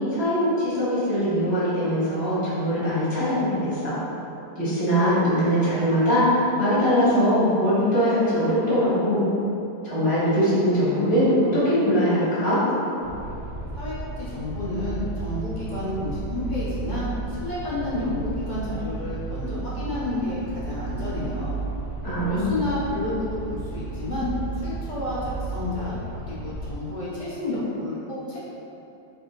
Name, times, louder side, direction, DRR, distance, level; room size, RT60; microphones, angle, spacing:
voice 1, 0.1-4.0 4.5-9.3 9.8-12.6 22.0-22.5, equal, 15° left, -12 dB, 1.2 m, -22 dB
sound 1, 13.0-26.7, right 3 dB, 55° right, 0.9 m, -33 dB
voice 2, 13.7-21.6 22.2-24.3 24.6-26.0 26.3-28.4, left 2 dB, 50° left, -9 dB, 0.5 m, -30 dB
3.4 x 2.7 x 3.9 m, 2.9 s
omnidirectional pair, 1.8 m